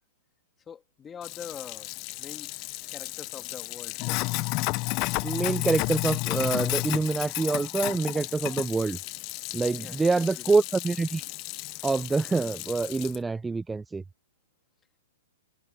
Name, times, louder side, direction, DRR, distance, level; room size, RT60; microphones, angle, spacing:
voice 1, 0.7-1.9 2.2-2.5 2.9-4.2 9.7-10.3, left 7 dB, 15° left, 1.8 m, -44 dB
Sink (filling or washing), 1.2-13.2, left 24 dB, 35° left, 0.6 m, -33 dB
voice 2, 5.2-9.0 9.5-11.3 11.8-14.0, right 3 dB, 10° right, 0.4 m, -26 dB
hypercardioid pair, 140°, 0 cm